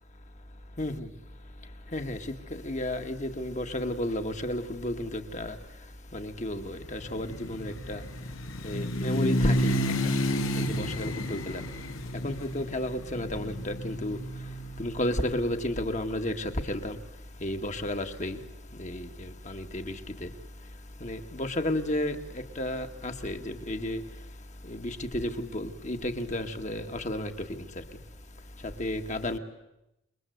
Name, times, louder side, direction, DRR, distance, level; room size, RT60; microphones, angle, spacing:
voice 1, 0.8-1.1 1.9-5.6 6.1-8.0 8.6-9.8 10.6-11.6 12.2-14.2 14.8-17.0 17.4-18.4 18.8-20.3 21.0-24.0 24.7-27.3 27.6-27.7 28.6-29.4, left 1 dB, 35° left, 1.8 m, -32 dB
sound 1, 6.8-14.8, equal, 85° left, 2.4 m, -31 dB
28.0 x 22.0 x 8.0 m
head